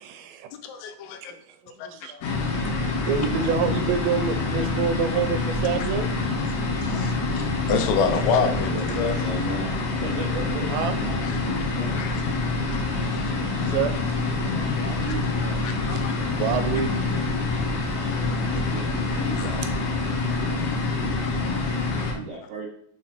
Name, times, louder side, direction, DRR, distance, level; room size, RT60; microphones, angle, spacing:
voice 1, 0.0-0.5 1.2-1.3 1.9-2.1 2.5-6.1 10.7-11.0 13.5-14.2 15.9-16.9 17.7-17.8, right 7 dB, 85° right, 8 dB, 2.5 m, -27 dB
voice 2, 0.6-1.2 1.8-1.9 6.4-6.5 6.9-9.2 11.2-11.4 12.0-12.2 13.0-13.3 15.6-16.1 18.2-18.6 19.4-19.5 20.2-20.6 21.0-21.3 21.8-21.9, left 6 dB, 90° left, 9 dB, 2.6 m, -28 dB
voice 3, 1.6-2.2 7.9-9.7 10.0-12.0 14.6-15.6 18.5-19.7 22.1-22.7, right 3 dB, 70° right, -3 dB, 1.5 m, -37 dB
sound 1, 2.2-22.1, left 3 dB, 70° left, 1.6 m, -26 dB
6.1 x 4.2 x 4.2 m, 0.64 s
omnidirectional pair, 4.2 m